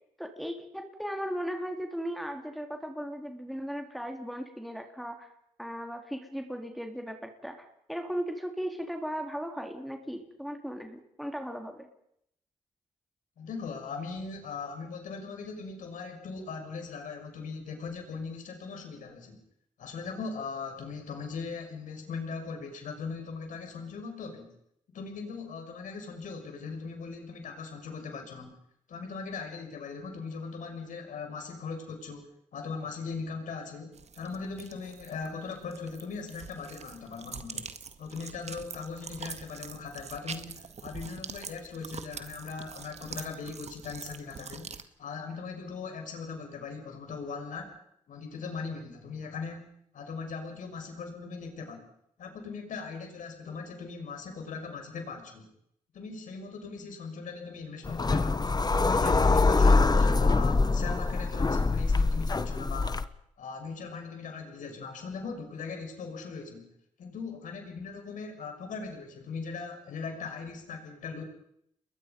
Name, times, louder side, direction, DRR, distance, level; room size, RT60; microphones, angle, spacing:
voice 1, 0.2-5.3 5.6-11.9, equal, ahead, 4 dB, 3.8 m, -37 dB
voice 2, 13.4-19.4 19.8-24.5 24.9-28.5 28.9-37.7 38.0-47.7 48.1-49.7 49.9-51.9 52.2-55.5 55.9-58.5 58.8-63.0 63.4-66.7 67.0-71.2, left 4 dB, 70° left, 4 dB, 6.3 m, -39 dB
sound 1, 33.9-44.8, right 6 dB, 55° right, 1.9 m, -44 dB
sound 2, 57.8-63.0, left 3 dB, 30° left, 1.4 m, -24 dB
29.5 x 21.5 x 5.5 m, 0.74 s
hypercardioid pair, 45°, 14 cm